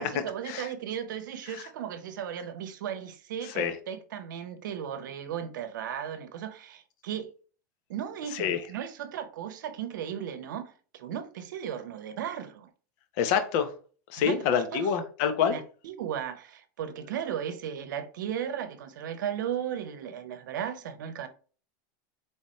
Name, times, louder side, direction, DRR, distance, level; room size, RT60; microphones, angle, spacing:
voice 1, 0.0-7.3 7.9-12.7 14.2-14.4 14.7-14.9 15.5-21.3, right 9 dB, 85° right, 0.8 m, -36 dB
voice 2, 3.4-3.8 8.3-8.6 13.2-13.7 14.1-15.6, left 7 dB, 60° left, 0.9 m, -27 dB
4.2 x 3.4 x 3.1 m
supercardioid pair, 125°, 10 cm